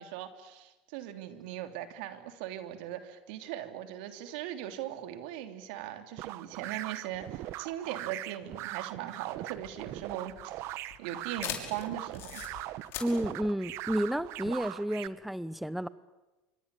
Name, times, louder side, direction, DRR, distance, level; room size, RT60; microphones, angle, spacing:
voice 1, 0.0-12.4, right 12 dB, 75° right, 8 dB, 3.1 m, -40 dB
sound 1, 6.2-15.1, right 15 dB, 60° right, 1.2 m, -40 dB
sound 2, 9.5-14.7, left 10 dB, 55° left, 5.8 m, -42 dB
voice 2, 13.0-15.9, equal, ahead, 16 dB, 0.9 m, -31 dB
27.0 x 25.0 x 8.4 m, 1.1 s
supercardioid pair, 100°, 5 cm